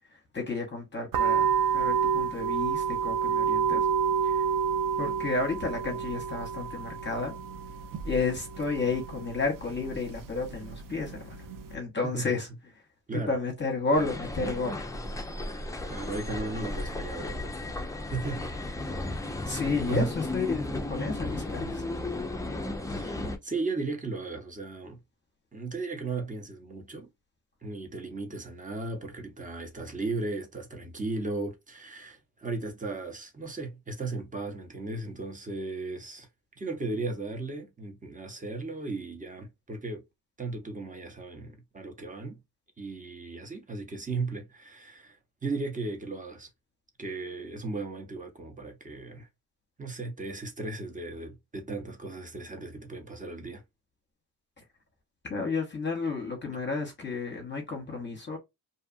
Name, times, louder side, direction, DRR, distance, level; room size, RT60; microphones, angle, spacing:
voice 1, 0.1-3.9 4.2-4.5 5.0-7.3 8.0-11.4 11.7-12.5 13.1-14.8 19.0-19.2 19.4-21.9 55.3-58.4, left 3 dB, 30° left, 0.8 m, -32 dB
sound 1, 1.1-11.7, right 7 dB, 55° right, 0.5 m, -29 dB
voice 2, 12.0-12.3 13.1-13.3 15.9-17.5 18.0-19.0 19.9-20.1 22.9-25.0 25.5-27.1 27.6-36.3 36.6-40.0 40.4-42.4 42.8-45.2 45.4-46.5 47.0-49.3 49.8-53.6, right 3 dB, 20° right, 0.8 m, -36 dB
sound 2, 13.9-23.4, left 2 dB, 10° left, 0.3 m, -34 dB
2.7 x 2.4 x 2.4 m
wide cardioid pair, 115°, 39 cm